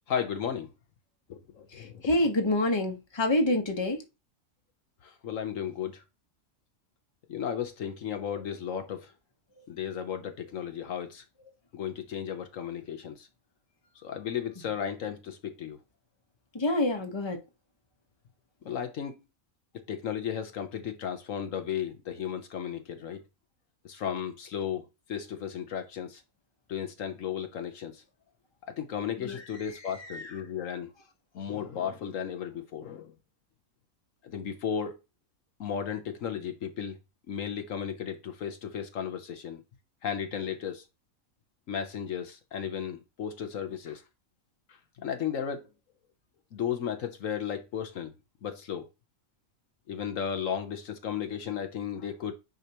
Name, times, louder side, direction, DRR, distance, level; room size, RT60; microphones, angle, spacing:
voice 1, 0.1-0.7 1.3-2.1 5.0-6.0 7.3-9.1 9.7-11.2 11.7-13.3 14.0-15.8 18.6-19.2 19.7-23.2 23.8-26.2 26.7-28.0 28.7-30.9 31.3-33.1 34.2-35.0 35.6-37.0 37.3-39.6 40.0-40.8 41.7-44.0 45.0-45.7 46.5-48.1 48.4-48.9 49.9-52.3, left 8 dB, 70° left, 1.2 m, -34 dB
voice 2, 1.8-4.0 16.5-17.4 29.2-29.4 30.1-30.3, left 1 dB, 20° left, 1.2 m, -27 dB
9.3 x 4.9 x 2.9 m
omnidirectional pair, 1.4 m